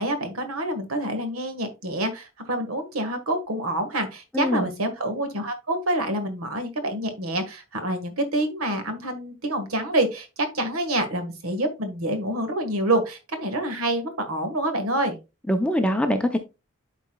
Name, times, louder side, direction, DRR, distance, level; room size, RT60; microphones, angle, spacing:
voice 1, 0.0-15.2, right 1 dB, 75° right, 8 dB, 1.5 m, -27 dB
voice 2, 4.3-4.6 15.5-16.4, equal, 5° left, 6 dB, 0.5 m, -23 dB
11.5 x 4.1 x 2.2 m, 0.26 s
head